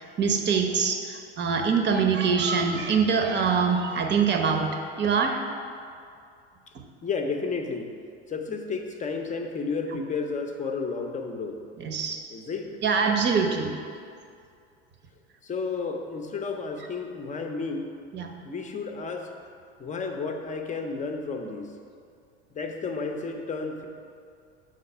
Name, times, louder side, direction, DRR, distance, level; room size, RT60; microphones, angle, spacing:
voice 1, 0.0-5.4 11.8-12.2 12.8-13.7 18.1-18.3, right 5 dB, 35° right, 4 dB, 0.8 m, -24 dB
voice 2, 7.0-11.7 12.3-12.8 15.4-17.9 18.4-19.3 19.8-21.8 22.5-23.9, left 4 dB, 20° left, 4 dB, 0.7 m, -32 dB
6.5 x 3.9 x 5.4 m, 2.4 s
hypercardioid pair, 80°, 32 cm